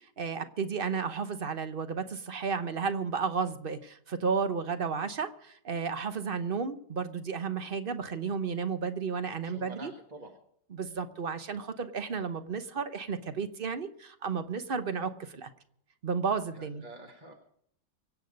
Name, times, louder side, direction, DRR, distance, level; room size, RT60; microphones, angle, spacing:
voice 1, 0.2-9.9 10.7-15.5 16.0-16.8, right 5 dB, 40° right, 10 dB, 0.8 m, -33 dB
voice 2, 9.4-10.4 16.5-17.3, right 2 dB, 25° right, 2 dB, 1.4 m, -47 dB
24.5 x 8.3 x 5.2 m, 0.67 s
omnidirectional pair, 2.0 m